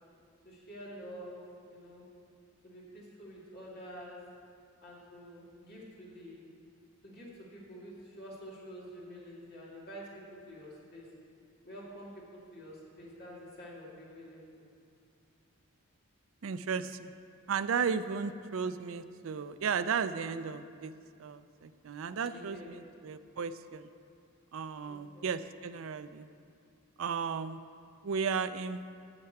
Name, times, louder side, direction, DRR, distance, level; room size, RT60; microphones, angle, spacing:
voice 1, 0.4-2.1 2.6-4.2 4.8-6.4 7.0-10.0 10.5-11.1 11.6-12.2 12.5-14.7 22.2-22.8 24.8-25.3, equal, 45° left, -5 dB, 2.4 m, -48 dB
voice 2, 16.4-17.1 17.5-20.9 21.2-23.9 24.5-26.3 27.0-27.6 28.0-28.8, right 6 dB, 65° right, 11 dB, 0.4 m, -34 dB
9.7 x 5.7 x 8.2 m, 2.4 s
head